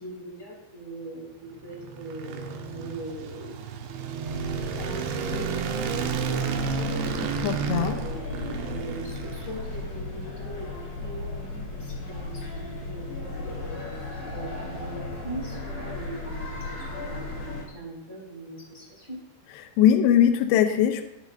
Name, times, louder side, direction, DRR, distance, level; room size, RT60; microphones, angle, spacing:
voice 1, 0.0-3.6 4.7-19.2, right 1 dB, 15° left, -3 dB, 2.0 m, -41 dB
sound 1, 1.5-10.0, right 7 dB, 75° right, 2.9 m, -32 dB
sound 2, 4.2-17.6, left 2 dB, 45° left, 4.1 m, -35 dB
voice 2, 7.4-8.0 19.8-21.1, left 10 dB, 85° left, 7 dB, 2.5 m, -20 dB
19.5 x 8.3 x 2.6 m, 0.86 s
omnidirectional pair, 5.9 m